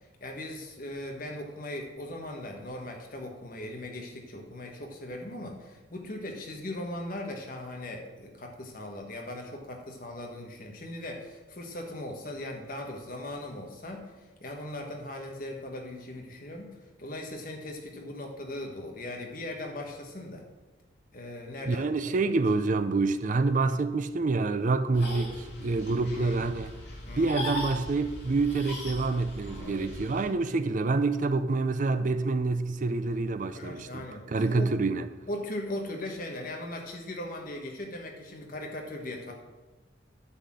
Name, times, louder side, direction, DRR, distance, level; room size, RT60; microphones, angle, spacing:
voice 1, 0.2-14.1 14.4-16.7 17.0-20.4 21.1-22.4 26.1-26.4 27.0-27.4 29.6-29.9 33.5-34.7 35.3-39.3, left 1 dB, 45° left, 1.4 m, -39 dB
voice 2, 21.7-26.7 27.2-35.1, right 3 dB, 40° right, 0.4 m, -27 dB
sound 1, 24.9-30.2, left 1 dB, 65° left, 2.8 m, -39 dB
9.8 x 4.2 x 7.5 m
head